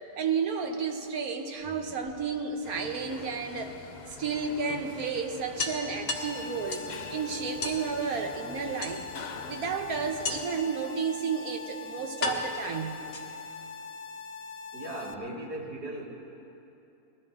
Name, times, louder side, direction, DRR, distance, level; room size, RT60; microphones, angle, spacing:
voice 1, 0.2-3.8 4.2-9.0 9.4-13.0, right 5 dB, 70° right, 4 dB, 1.5 m, -32 dB
sound 1, 1.5-2.6 4.1-4.2 4.6-4.7 5.0-5.1 5.6-7.0 7.6-7.9 8.8-9.4 10.2-10.7 11.5-11.6 12.2-13.6, left 3 dB, 45° left, 1.3 m, -35 dB
sound 2, 2.6-10.4, left 6 dB, 80° left, 1.4 m, -45 dB
sound 3, 6.1-15.1, left 4 dB, 65° left, 0.6 m, -42 dB
voice 2, 14.7-16.0, right 1 dB, 85° right, -3 dB, 2.5 m, -37 dB
20.0 x 13.5 x 3.7 m, 2.8 s
omnidirectional pair, 1.7 m